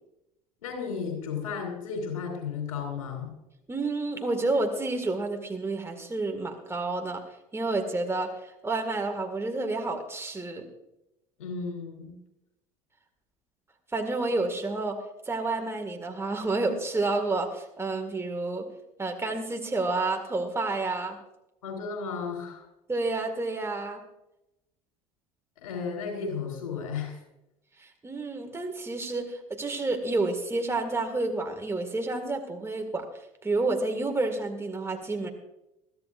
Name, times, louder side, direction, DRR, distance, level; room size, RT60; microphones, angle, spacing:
voice 1, 0.6-3.4 11.4-12.2 21.6-22.6 25.6-27.2, left 5 dB, 70° left, 3 dB, 3.9 m, -34 dB
voice 2, 3.7-7.2 7.5-10.7 13.9-15.0 15.3-18.7 19.0-21.2 22.9-24.0 27.8-33.0 33.4-35.3, right 3 dB, 15° right, 4 dB, 1.9 m, -29 dB
22.0 x 13.5 x 2.5 m, 0.89 s
figure-of-eight pair, 65°, 18 cm